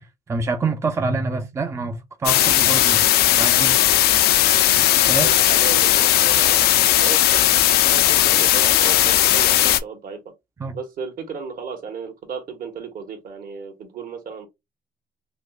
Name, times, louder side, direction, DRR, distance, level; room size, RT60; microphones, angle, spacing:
voice 1, 0.3-3.7 5.1-5.3 10.6-10.7, right 3 dB, 15° right, 0.5 m, -26 dB
sound 1, 2.2-9.8, left 13 dB, 70° left, 0.5 m, -17 dB
voice 2, 5.1-6.7 7.0-7.4 7.9-10.2 10.7-14.5, right 6 dB, 55° right, 1.3 m, -34 dB
5.0 x 2.0 x 2.3 m
cardioid pair, 110°, 17 cm